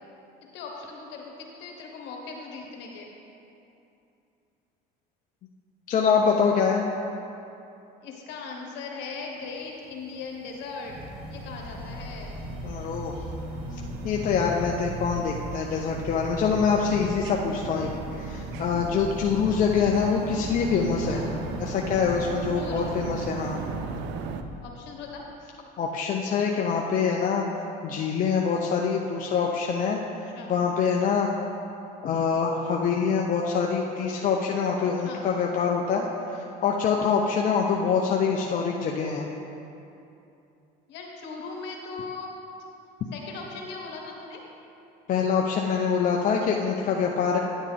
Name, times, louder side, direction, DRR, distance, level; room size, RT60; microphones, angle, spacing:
voice 1, 0.5-3.1 8.0-11.0 11.3-12.4 19.3-19.5 21.1-21.3 22.5-23.0 24.6-25.2 30.3-30.5 35.0-35.3 40.9-42.3 43.1-44.4, left 4 dB, 65° left, 0 dB, 1.5 m, -39 dB
voice 2, 5.9-6.8 12.6-13.1 14.0-17.9 18.2-21.2 21.6-23.6 25.8-27.4 27.8-30.0 30.5-31.3 32.0-39.3 45.1-47.4, left 6 dB, 45° left, 0 dB, 0.7 m, -25 dB
sound 1, 9.8-24.4, right 7 dB, 65° right, 0.5 m, -40 dB
sound 2, 10.8-24.5, equal, 25° right, 1.7 m, -37 dB
9.7 x 7.3 x 3.5 m, 2.8 s
supercardioid pair, 95°, 20 cm